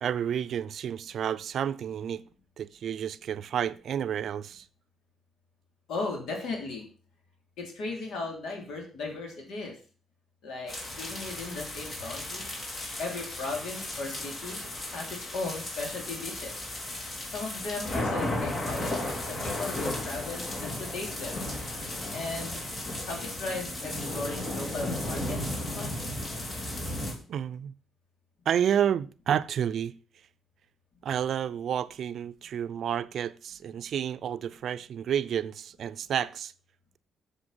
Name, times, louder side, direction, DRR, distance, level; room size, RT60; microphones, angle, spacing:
voice 1, 0.0-2.2 2.6-4.7 27.3-27.7 28.5-29.9 31.0-36.5, right 9 dB, 65° right, 0.5 m, -30 dB
voice 2, 5.9-6.8 7.6-9.7 10.4-12.4 13.0-14.6 14.9-16.6 17.3-18.9 19.2-21.5 22.1-22.6 23.1-25.4 25.7-26.1, left 3 dB, 75° left, 3.0 m, -36 dB
sound 1, 10.7-27.1, left 1 dB, 40° left, 3.1 m, -34 dB
7.8 x 6.6 x 5.6 m
cardioid pair, 90°, 0 cm